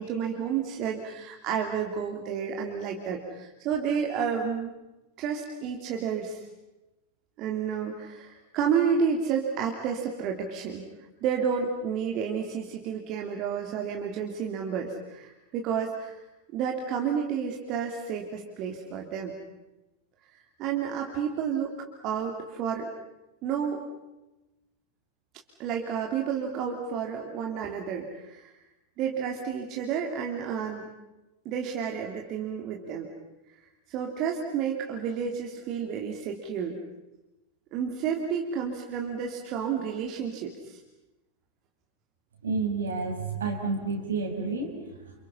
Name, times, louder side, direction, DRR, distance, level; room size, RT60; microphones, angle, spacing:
voice 1, 0.0-4.7 5.2-6.4 7.4-10.8 11.2-16.2 16.5-19.3 20.6-22.9 23.4-23.8 25.6-28.5 29.0-30.9 31.4-33.1 33.9-36.8 37.7-40.8, right 7 dB, 40° right, 1 dB, 3.2 m, -30 dB
voice 2, 42.4-45.1, right 4 dB, 70° right, 3 dB, 6.2 m, -30 dB
30.0 x 29.0 x 5.7 m, 1.0 s
figure-of-eight pair, 90°, 0 cm